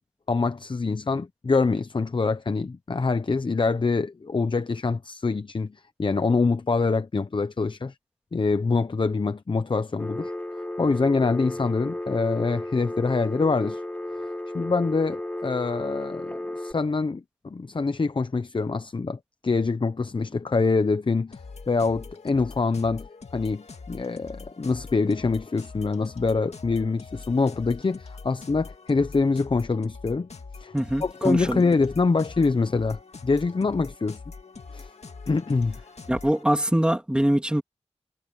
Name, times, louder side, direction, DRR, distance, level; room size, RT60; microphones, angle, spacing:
voice 1, 0.3-7.9 8.3-10.3 10.8-13.8 14.5-21.4 21.7-23.1 23.3-30.3 30.6-30.7 31.0-34.2 34.7-34.9 35.3-35.8, left 4 dB, 45° left, 0.8 m, -25 dB
Telephone, 10.0-16.7, left 1 dB, 15° left, 2.1 m, -34 dB
sound 1, 21.3-36.4, left 4 dB, 65° left, 2.1 m, -43 dB
voice 2, 30.7-31.6 36.1-37.6, right 1 dB, 10° right, 2.3 m, -23 dB
wide cardioid pair, 100°, 12 cm